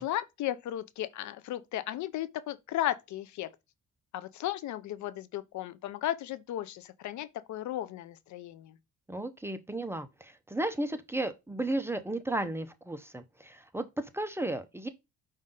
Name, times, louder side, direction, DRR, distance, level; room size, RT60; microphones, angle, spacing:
voice 1, 0.0-3.5 4.1-8.8, left 13 dB, 70° left, 0.5 m, -35 dB
voice 2, 9.1-14.9, right 1 dB, 10° right, 0.5 m, -34 dB
5.2 x 2.6 x 3.7 m
cardioid pair, 90°, 30 cm